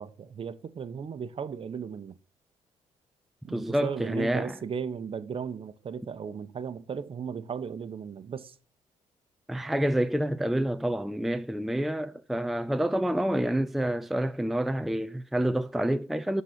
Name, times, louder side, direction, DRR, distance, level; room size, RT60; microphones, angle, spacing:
voice 1, 0.0-2.2 3.4-8.6, right 6 dB, 45° right, 0.8 m, -36 dB
voice 2, 3.5-4.5 9.5-16.4, right 1 dB, ahead, 0.4 m, -28 dB
11.5 x 4.1 x 5.9 m
cardioid pair, 80°, 13 cm